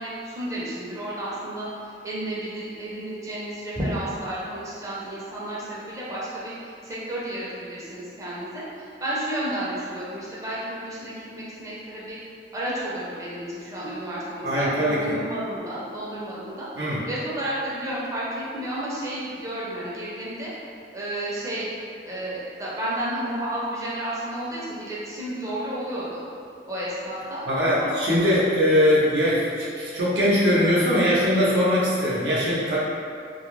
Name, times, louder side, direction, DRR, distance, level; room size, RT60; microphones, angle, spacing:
voice 1, 0.0-12.2 12.5-20.5 20.9-21.7 22.1-26.2 26.7-27.4 27.8-28.0, right 1 dB, 20° right, -8 dB, 0.5 m, -32 dB
voice 2, 14.4-15.1 16.7-17.0 27.5-32.8, equal, 85° right, -7 dB, 0.7 m, -21 dB
2.3 x 2.0 x 3.0 m, 2.4 s
head